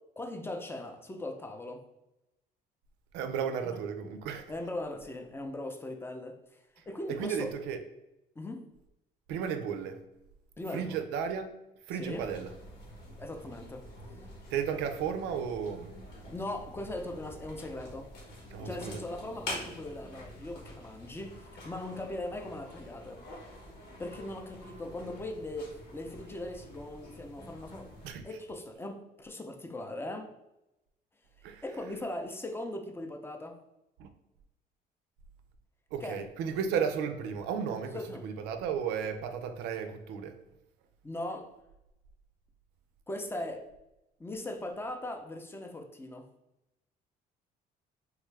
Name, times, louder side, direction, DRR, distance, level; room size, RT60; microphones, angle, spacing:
voice 1, 0.2-1.8 3.6-3.8 4.5-6.4 6.9-7.5 8.4-8.6 10.6-11.0 12.0-12.2 13.2-13.8 16.3-18.1 18.6-23.2 24.0-27.9 28.2-30.3 31.6-33.6 36.0-36.2 37.9-38.2 41.0-41.5 43.1-43.7 44.2-46.3, left 1 dB, 15° left, 0.5 m, -39 dB
voice 2, 3.1-4.5 6.8-7.8 9.3-10.0 10.7-11.5 11.9-12.5 14.5-15.9 18.5-19.1 28.0-28.2 31.4-31.6 34.0-34.1 35.9-40.4, right 7 dB, 90° right, 0.4 m, -34 dB
sound 1, 12.1-28.1, left 1 dB, 80° left, 1.4 m, -47 dB
3.3 x 2.3 x 3.2 m
cardioid pair, 110°, 17 cm